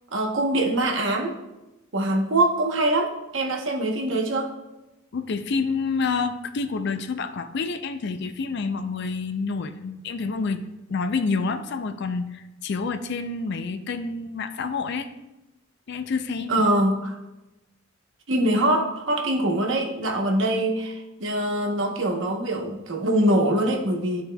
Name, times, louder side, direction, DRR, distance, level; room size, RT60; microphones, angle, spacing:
voice 1, 0.1-1.3 1.9-4.5 16.5-17.2 18.3-24.2, right 1 dB, 70° right, 1 dB, 0.9 m, -23 dB
voice 2, 5.1-15.1 15.9-16.6, left 4 dB, 60° left, 9 dB, 0.4 m, -28 dB
11.5 x 4.2 x 2.2 m, 0.99 s
head